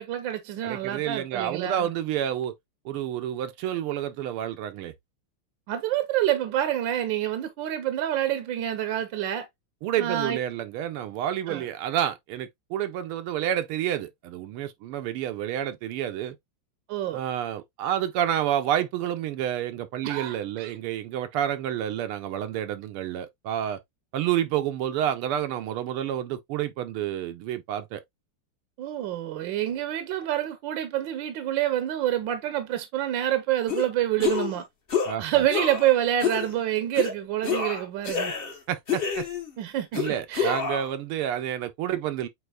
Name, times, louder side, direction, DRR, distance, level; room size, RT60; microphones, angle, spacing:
voice 1, 0.0-1.9 5.7-9.5 10.0-10.4 11.5-11.7 16.9-17.2 20.0-20.7 28.8-34.6 35.2-38.3 39.6-40.0 40.3-40.5, right 12 dB, 65° right, 1.3 m, -27 dB
voice 2, 0.6-2.5 2.9-4.9 9.8-16.4 17.1-23.8 24.1-28.0 35.1-35.4 38.7-39.3 39.9-42.3, right 11 dB, 80° right, 1.6 m, -29 dB
sound 1, 33.7-33.9 34.2-34.6 34.9-35.1 35.5-35.9 36.2-36.5 36.9-37.1 37.4-38.6 38.9-39.5 39.9-40.9, left 6 dB, 35° left, 1.0 m, -28 dB
8.0 x 2.9 x 2.3 m
omnidirectional pair, 2.4 m